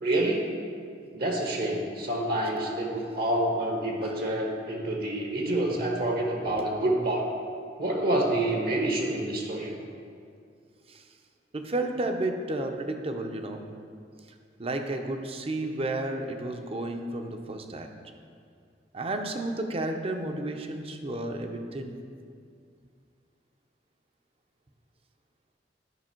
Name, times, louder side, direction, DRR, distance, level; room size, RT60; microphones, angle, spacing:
voice 1, 0.0-0.4 1.1-7.2 7.8-9.7, right 1 dB, 60° right, 0 dB, 1.1 m, -27 dB
voice 2, 11.5-13.6 14.6-17.9 18.9-22.0, right 2 dB, 35° right, 5 dB, 0.7 m, -32 dB
11.0 x 5.3 x 4.5 m, 2.2 s
head